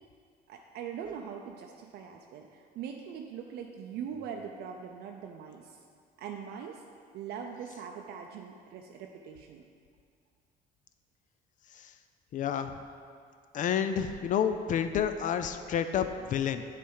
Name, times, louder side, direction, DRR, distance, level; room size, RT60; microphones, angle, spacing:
voice 1, 0.5-5.8 6.2-6.8 7.1-9.6, right 7 dB, 70° right, 2 dB, 0.5 m, -42 dB
voice 2, 12.3-12.8 13.5-16.6, left 8 dB, 50° left, 9 dB, 0.4 m, -29 dB
8.4 x 3.3 x 5.5 m, 2.2 s
cardioid pair, 110°, 17 cm